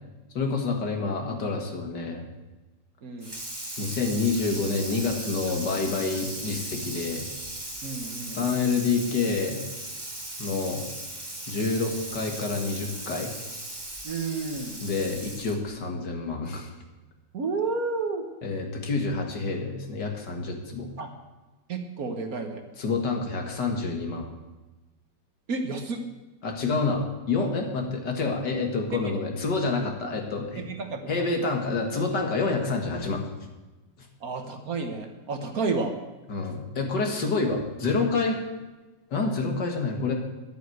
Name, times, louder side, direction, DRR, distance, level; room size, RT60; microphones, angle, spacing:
voice 1, 0.3-2.2 3.8-7.3 8.3-9.6 10.4-10.8 11.5-13.3 14.8-16.7 18.4-20.9 22.8-24.3 26.4-30.6 31.1-33.2 34.0-34.1 36.3-38.4 39.1-40.1, left 4 dB, 70° left, 2 dB, 2.4 m, -28 dB
voice 2, 3.0-3.4 7.8-8.4 14.0-14.8 17.3-18.2 21.0-21.1 21.7-22.6 25.5-26.0 28.9-29.2 30.6-31.2 34.2-35.9, right 4 dB, 55° right, 5 dB, 1.6 m, -31 dB
Water tap faucet / Sink (filling or washing), 3.2-15.7, right 1 dB, 15° right, 1.5 m, -37 dB
11.0 x 8.6 x 7.9 m, 1.1 s
omnidirectional pair, 2.0 m